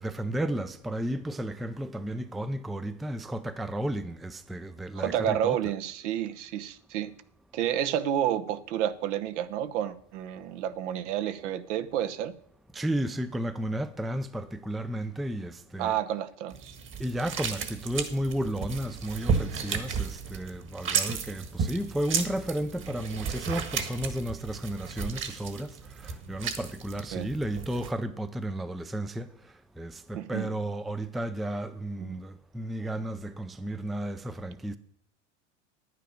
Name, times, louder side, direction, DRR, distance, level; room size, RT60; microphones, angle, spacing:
voice 1, 0.0-5.6 12.7-15.9 17.0-34.8, right 1 dB, ahead, 0.4 m, -33 dB
voice 2, 5.0-7.1 7.5-12.3 15.8-16.7 27.1-27.3 30.1-30.5 32.0-32.2, right 10 dB, 70° right, 1.0 m, -30 dB
sound 1, 16.5-27.9, right 6 dB, 30° right, 1.6 m, -34 dB
10.0 x 9.4 x 5.1 m
hypercardioid pair, 105°, 37 cm